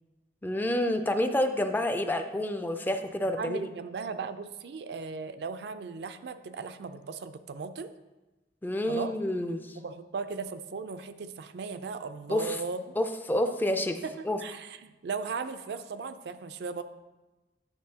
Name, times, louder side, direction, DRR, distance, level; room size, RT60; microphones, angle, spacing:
voice 1, 0.4-3.7 8.6-9.8 12.3-12.6 13.0-14.0 14.2-14.4, left 1 dB, 10° left, 7 dB, 0.3 m, -28 dB
voice 2, 3.4-7.9 8.9-9.1 9.8-13.0 14.0-16.8, right 4 dB, 70° right, 10 dB, 0.4 m, -37 dB
9.5 x 6.1 x 2.8 m, 1.1 s
head